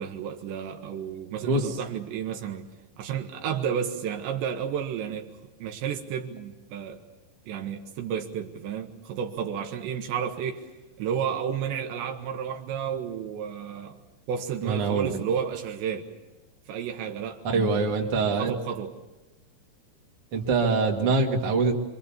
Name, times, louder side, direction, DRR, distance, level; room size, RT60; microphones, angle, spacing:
voice 1, 0.0-2.7 3.0-5.3 5.6-7.0 7.5-10.7 11.0-14.0 14.3-16.1 16.7-17.9 18.2-18.9, right 8 dB, 75° right, 4 dB, 3.5 m, -32 dB
voice 2, 1.4-1.8 14.6-15.2 17.4-18.5 20.3-21.7, right 4 dB, 40° right, 0 dB, 2.5 m, -24 dB
26.0 x 25.5 x 7.2 m, 1.1 s
omnidirectional pair, 5.2 m